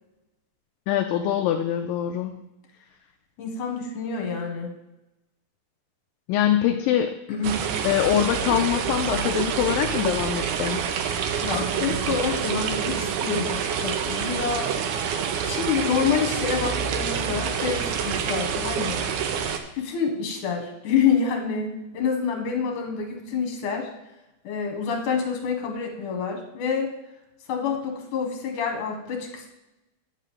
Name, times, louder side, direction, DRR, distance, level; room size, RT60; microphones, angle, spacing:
voice 1, 0.9-2.4 6.3-7.2 7.8-10.9, left 10 dB, 80° left, 4 dB, 2.2 m, -24 dB
voice 2, 3.4-4.7 7.3-7.6 11.4-14.7 15.4-19.0 19.7-23.9 24.4-26.9 27.5-29.5, left 6 dB, 65° left, 2 dB, 2.9 m, -27 dB
sound 1, 7.4-19.6, right 7 dB, 75° right, 2.0 m, -27 dB
11.0 x 3.8 x 7.5 m, 0.94 s
omnidirectional pair, 4.2 m